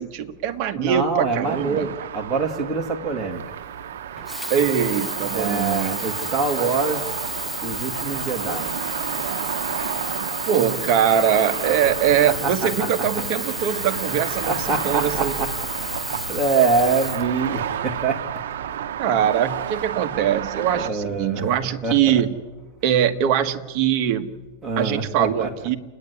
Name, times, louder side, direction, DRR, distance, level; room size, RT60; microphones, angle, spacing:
voice 1, 0.0-1.9 4.5-6.0 10.5-14.6 14.8-15.3 19.0-22.3 22.8-24.3 24.8-25.8, right 9 dB, 40° right, 7 dB, 1.4 m, -22 dB
voice 2, 0.7-4.1 5.3-7.2 7.6-10.4 12.3-13.2 14.1-18.9 20.7-21.5 21.8-22.3 24.6-25.7, right 4 dB, 15° right, 1 dB, 2.3 m, -26 dB
sound 1, 1.4-20.9, right 10 dB, 80° right, 0.8 m, -31 dB
Sink (filling or washing), 4.2-17.9 18.7-18.8, left 1 dB, 5° left, 0.6 m, -33 dB
sound 2, 11.8-17.3, left 3 dB, 60° left, 1.6 m, -41 dB
29.0 x 9.9 x 9.7 m, 1.2 s
supercardioid pair, 155°, 0 cm